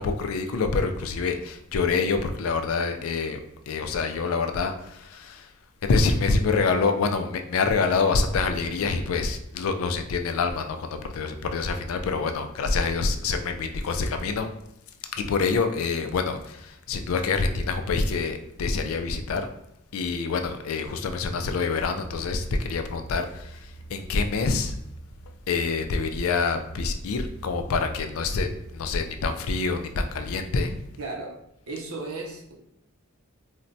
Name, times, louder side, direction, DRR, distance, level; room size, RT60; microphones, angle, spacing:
voice 1, 0.0-3.4 3.7-5.5 5.8-14.5 15.1-19.5 19.9-24.7 25.5-30.8, left 4 dB, 80° left, 0.4 m, -26 dB
sound 1, 22.0-30.2, right 2 dB, 50° right, 0.5 m, -44 dB
voice 2, 31.0-31.4 31.7-32.5, right 3 dB, 90° right, 0.7 m, -35 dB
4.1 x 2.1 x 2.6 m
head